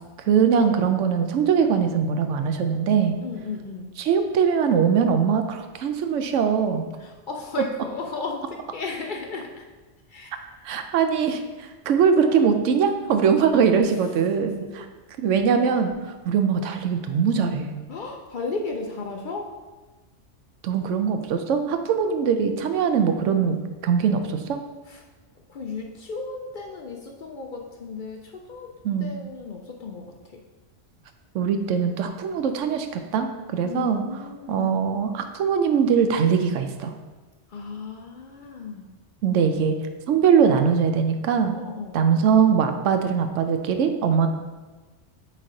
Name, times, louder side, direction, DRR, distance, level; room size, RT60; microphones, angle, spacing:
voice 1, 0.3-3.2 4.0-6.8 10.6-14.8 15.2-15.9 16.2-17.8 20.6-23.6 23.8-24.6 28.8-29.1 31.3-34.0 34.5-36.9 39.2-39.8 40.1-41.6 41.9-44.3, right 6 dB, 85° right, 7 dB, 0.9 m, -21 dB
voice 2, 3.2-3.9 7.0-9.6 10.1-10.4 17.9-19.5 24.9-25.0 25.5-28.7 29.0-30.4 33.6-34.9 37.5-38.9 41.5-42.0, left 4 dB, 55° left, 2 dB, 0.6 m, -34 dB
8.1 x 3.3 x 3.7 m, 1.2 s
omnidirectional pair, 1.3 m